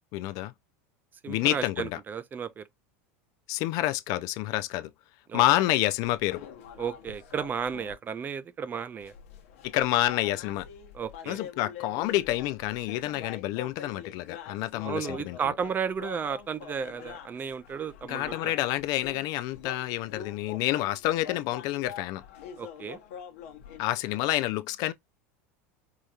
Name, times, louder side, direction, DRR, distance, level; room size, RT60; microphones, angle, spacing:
voice 1, 0.1-0.5 1.3-2.0 3.5-4.9 5.3-6.4 9.6-10.7 11.3-15.4 18.1-22.2 23.8-24.9, left 15 dB, 55° left, 0.4 m, -28 dB
voice 2, 1.2-2.7 5.3-5.4 6.8-9.1 10.9-11.4 14.8-18.5 22.6-23.0, right 7 dB, 25° right, 0.4 m, -33 dB
sound 1, 6.0-7.9 9.0-23.8, left 8 dB, 75° left, 0.9 m, -45 dB
4.9 x 2.8 x 2.4 m
supercardioid pair, 115°, 8 cm